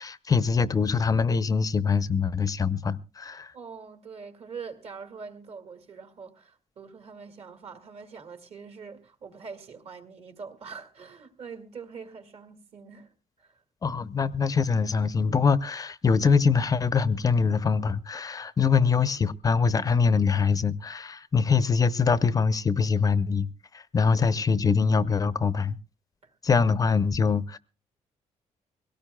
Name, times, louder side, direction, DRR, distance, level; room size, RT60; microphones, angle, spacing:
voice 1, 0.0-3.5 13.8-23.5 23.7-25.8 26.4-27.6, left 5 dB, 30° left, 0.6 m, -23 dB
voice 2, 3.5-13.1 13.4-13.6 24.0-24.7 26.2-26.3, right 5 dB, 50° right, 2.2 m, -44 dB
22.5 x 17.5 x 2.3 m
cardioid pair, 145°, 13 cm